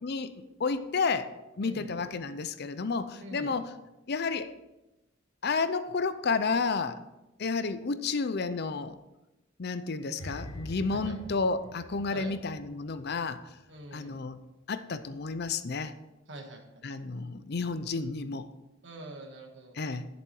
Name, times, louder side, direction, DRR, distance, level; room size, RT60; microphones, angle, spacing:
voice 1, 0.0-0.3 0.6-3.7 4.1-4.5 5.4-7.0 7.4-9.0 9.6-13.4 13.9-14.4 14.7-15.9 16.8-18.5 19.8-20.1, left 4 dB, 50° left, 12 dB, 0.6 m, -31 dB
voice 2, 1.6-2.1 3.2-3.6 10.9-11.2 12.1-12.4 13.7-14.2 16.3-16.8 18.8-19.8, right 2 dB, 60° right, 3 dB, 1.7 m, -45 dB
sound 1, 10.2-13.4 13.6-13.9, left 1 dB, 90° left, 1.8 m, -44 dB
11.0 x 7.2 x 4.6 m, 0.98 s
head